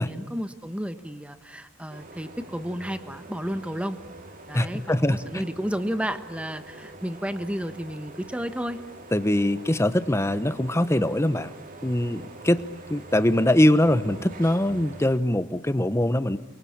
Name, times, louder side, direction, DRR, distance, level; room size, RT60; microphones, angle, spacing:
voice 1, 0.0-4.0 4.5-8.8, equal, 5° right, 10 dB, 1.2 m, -32 dB
sound 1, 1.9-15.2, right 2 dB, 45° right, 2.1 m, -44 dB
voice 2, 4.5-5.4 9.1-11.5 11.8-12.6 12.9-16.4, left 1 dB, 15° left, 12 dB, 1.0 m, -22 dB
29.5 x 23.0 x 8.7 m, 0.97 s
head